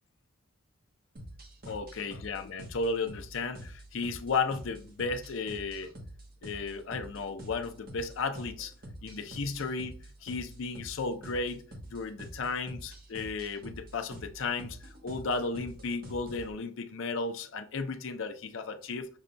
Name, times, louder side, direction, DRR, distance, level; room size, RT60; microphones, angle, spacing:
sound 1, 1.2-16.5, right 1 dB, 45° right, 0.9 m, -47 dB
voice 1, 1.6-5.9 6.4-8.7 9.0-9.9 10.2-11.6 11.9-19.1, left 4 dB, 75° left, 0.5 m, -34 dB
6.4 x 2.2 x 2.5 m
head